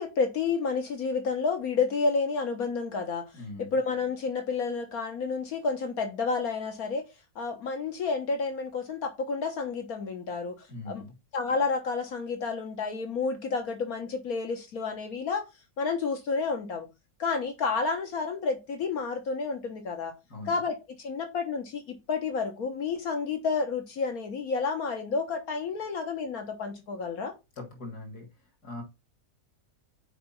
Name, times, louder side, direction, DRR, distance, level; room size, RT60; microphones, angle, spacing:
voice 1, 0.0-3.3 3.6-7.1 7.4-11.0 11.3-15.4 15.8-16.9 17.2-20.1 20.5-27.3, left 4 dB, 75° left, 1.7 m, -30 dB
voice 2, 3.3-3.8 10.7-11.1 20.3-20.6 27.6-28.3 28.6-28.8, left 2 dB, 90° left, 3.1 m, -41 dB
6.8 x 5.0 x 5.7 m
omnidirectional pair, 1.6 m